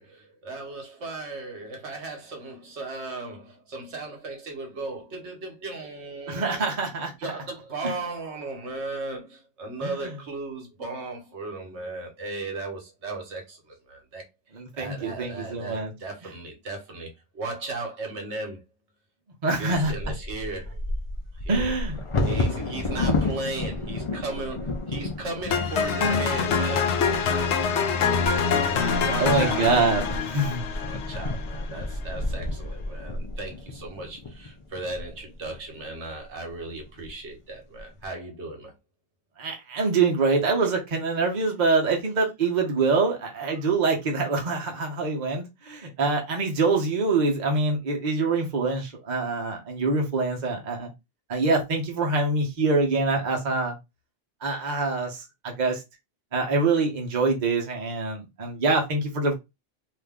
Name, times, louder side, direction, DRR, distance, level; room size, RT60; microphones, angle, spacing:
voice 1, 0.0-6.7 7.2-14.2 14.7-18.6 19.6-20.8 21.4-21.7 22.2-26.9 29.0-30.0 30.8-38.7, right 2 dB, 65° right, 1.2 m, -36 dB
voice 2, 6.3-7.1 7.8-7.9 9.8-10.1 14.5-15.9 19.4-19.9 21.5-22.0 29.2-30.6 39.4-50.9 51.3-53.7 54.4-55.8 56.3-59.3, right 3 dB, 40° right, 0.9 m, -25 dB
Bird vocalization bird call bird song / Wind / Thunder, 20.0-35.6 36.2-36.3 36.7-37.1 37.5-38.0, left 2 dB, 45° left, 0.4 m, -32 dB
sound 1, 25.5-31.6, left 5 dB, 70° left, 0.9 m, -25 dB
2.8 x 2.5 x 3.5 m
omnidirectional pair, 1.3 m